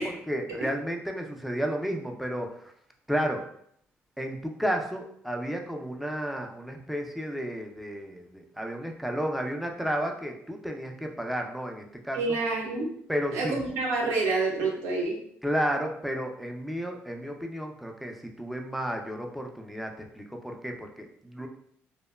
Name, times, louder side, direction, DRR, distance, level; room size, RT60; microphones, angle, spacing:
voice 1, 0.0-2.7 3.1-3.4 4.2-12.4 13.1-13.6 15.4-21.5, equal, ahead, 2 dB, 0.4 m, -32 dB
voice 2, 12.1-12.9 13.3-15.2, right 3 dB, 90° right, -2 dB, 0.7 m, -28 dB
2.9 x 2.0 x 2.2 m, 0.68 s
cardioid pair, 105°, 5 cm